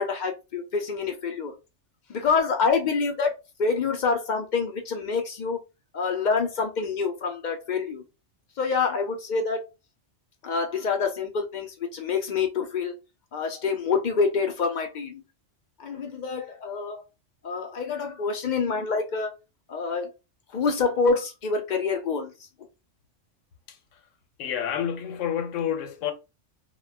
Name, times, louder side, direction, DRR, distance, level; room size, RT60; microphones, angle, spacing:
voice 1, 0.0-1.5 2.1-3.3 3.6-5.6 5.9-8.0 8.6-9.6 10.4-12.9 13.3-15.2 15.8-17.0 17.4-19.3 19.7-20.1 20.5-22.3, left 5 dB, 65° left, 0.4 m, -26 dB
voice 2, 23.7-24.0 24.4-26.1, left 9 dB, 85° left, 0.9 m, -29 dB
2.2 x 2.1 x 3.3 m
omnidirectional pair, 1.3 m